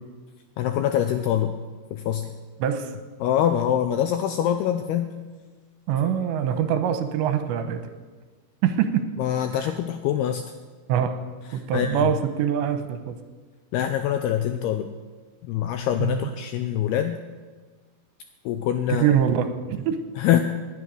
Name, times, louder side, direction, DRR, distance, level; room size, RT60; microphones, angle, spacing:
voice 1, 0.6-1.5 1.9-2.3 3.2-5.1 9.2-10.4 11.7-12.1 13.7-14.9 15.4-17.2 18.5-19.1 20.2-20.4, left 10 dB, 90° left, 8 dB, 2.3 m, -24 dB
voice 2, 5.9-7.8 8.6-9.0 9.6-9.7 10.9-11.1 11.5-13.2 16.0-16.3 18.9-20.0, right 9 dB, 80° right, 8 dB, 3.2 m, -24 dB
19.0 x 10.5 x 6.5 m, 1.4 s
omnidirectional pair, 5.3 m